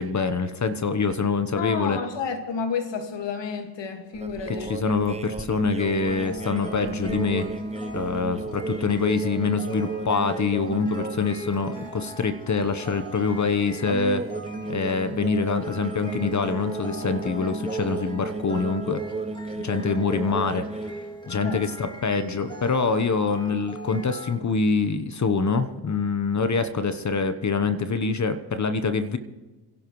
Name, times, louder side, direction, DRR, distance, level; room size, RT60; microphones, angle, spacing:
voice 1, 0.0-2.0 4.5-7.5 7.9-14.2 14.7-19.0 19.6-21.0 21.3-29.2, left 4 dB, 35° left, 1.1 m, -25 dB
voice 2, 1.6-4.7 21.3-21.7, left 6 dB, 65° left, 2.0 m, -31 dB
sound 1, 4.1-11.2 11.5-12.0 13.8-20.9, right 2 dB, 15° right, 1.0 m, -34 dB
sound 2, 6.1-24.3, right 1 dB, 10° left, 2.4 m, -41 dB
27.5 x 11.5 x 3.2 m
supercardioid pair, 60°, 47 cm